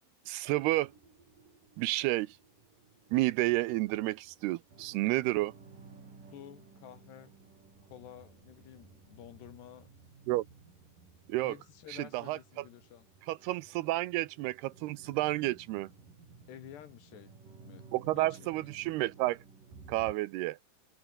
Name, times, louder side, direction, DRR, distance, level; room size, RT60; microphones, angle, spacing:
voice 1, 0.3-0.9 1.8-2.4 3.1-5.5 10.3-10.5 11.3-11.5 11.9-12.4 13.3-15.9 17.9-19.4 19.9-20.6, right 18 dB, 80° right, 2.5 m, -30 dB
sound 1, 0.8-20.1, right 4 dB, 50° right, 7.7 m, -56 dB
voice 2, 6.3-7.4 7.9-9.9 11.4-13.1 16.5-17.3 17.6-18.7, left 10 dB, 75° left, 4.3 m, -51 dB
omnidirectional pair, 4.9 m